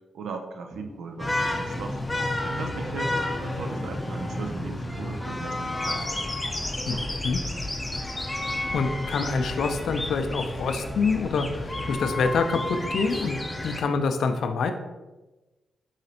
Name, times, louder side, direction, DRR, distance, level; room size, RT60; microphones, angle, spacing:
voice 1, 0.1-2.0 2.4-3.2 3.4-6.1, right 4 dB, 80° right, 5 dB, 0.4 m, -37 dB
Walk footsteps, 0.7-7.4, left 1 dB, 55° right, 1.5 m, -45 dB
sound 1, 1.2-13.8, left 1 dB, 20° left, 0.6 m, -31 dB
sound 2, 6.0-12.3, left 1 dB, 5° right, 0.9 m, -41 dB
voice 2, 6.9-7.4 8.7-13.4 13.6-14.7, left 4 dB, 75° left, 7 dB, 0.4 m, -26 dB
4.9 x 3.1 x 2.7 m, 1.1 s
supercardioid pair, 50°, 0 cm